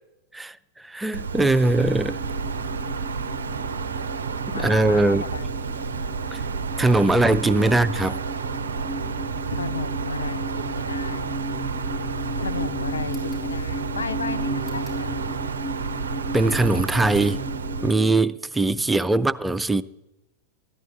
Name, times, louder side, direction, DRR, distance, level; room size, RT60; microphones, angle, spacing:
voice 1, 0.8-2.2 4.5-5.2 6.3-6.4 6.8-8.2 16.3-17.4 17.8-19.8, right 2 dB, 10° right, 0.5 m, -21 dB
Wind, 1.1-17.9, right 5 dB, 70° right, 0.5 m, -30 dB
sound 1, 1.7-18.3, equal, 50° left, 3.5 m, -35 dB
voice 2, 4.5-5.5 7.2-7.4 9.5-11.4 12.4-15.1 18.7-18.9, left 4 dB, 75° left, 0.5 m, -34 dB
sound 2, 13.0-13.5 14.6-15.1 16.5-17.3, left 3 dB, 35° left, 4.8 m, -50 dB
14.0 x 11.0 x 9.2 m
figure-of-eight pair, 90°, 0 cm